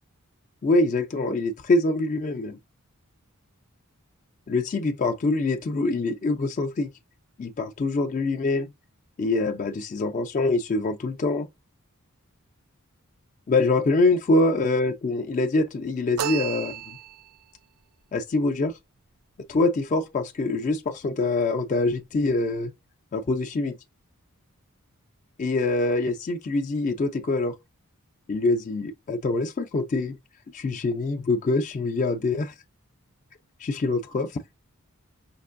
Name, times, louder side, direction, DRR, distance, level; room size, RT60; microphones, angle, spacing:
voice 1, 0.6-2.6 4.5-6.9 7.4-8.7 9.2-11.5 13.5-16.8 18.1-18.7 19.5-22.7 23.1-23.7 25.4-27.6 28.3-30.2 30.5-32.5 33.6-34.4, left 2 dB, 35° left, 0.4 m, -24 dB
sound 1, 16.2-17.4, right 10 dB, 80° right, 0.3 m, -32 dB
5.2 x 2.4 x 2.4 m
head